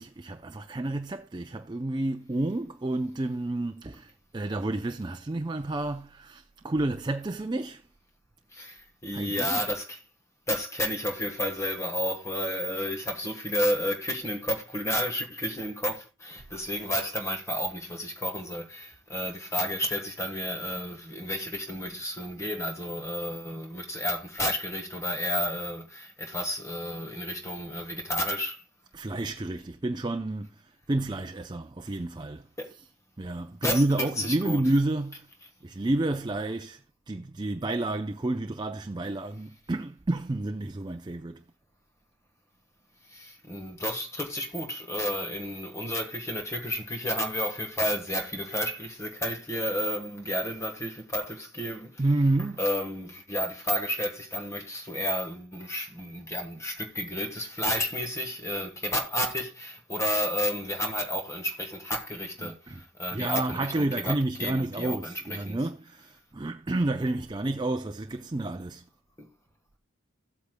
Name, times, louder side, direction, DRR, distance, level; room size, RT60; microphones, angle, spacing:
voice 1, 0.0-7.8 9.1-9.6 28.9-32.9 33.2-35.3 35.6-36.8 37.1-41.4 52.0-52.6 62.4-62.8 63.1-68.8, right 2 dB, 20° right, 0.5 m, -30 dB
voice 2, 8.5-10.0 10.5-28.6 32.6-32.7 33.6-34.6 43.1-52.0 52.6-65.6 69.2-69.3, equal, 15° left, 1.3 m, -31 dB
15.5 x 8.4 x 2.2 m
head